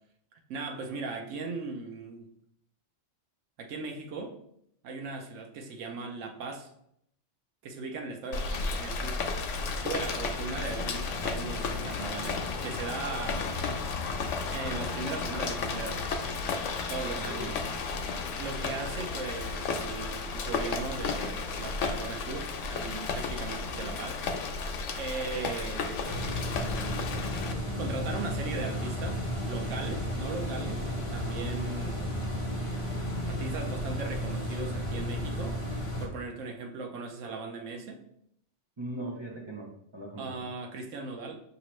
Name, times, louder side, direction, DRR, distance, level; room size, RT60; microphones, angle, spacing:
voice 1, 0.3-2.3 3.6-4.4 4.8-6.7 7.6-9.2 9.8-13.6 14.5-16.0 16.9-17.6 18.4-24.2 25.0-26.3 27.8-29.2 29.5-32.3 33.3-35.6 36.0-38.0 40.2-41.4, right 4 dB, 85° right, 3 dB, 1.0 m, -38 dB
Rain, 8.3-27.5, left 4 dB, 90° left, 0.9 m, -33 dB
voice 2, 17.1-17.5 38.8-40.5, right 1 dB, 30° right, -1 dB, 0.6 m, -39 dB
sound 1, 26.0-36.1, equal, 30° left, 0.7 m, -33 dB
5.5 x 2.9 x 3.1 m, 0.72 s
omnidirectional pair, 1.2 m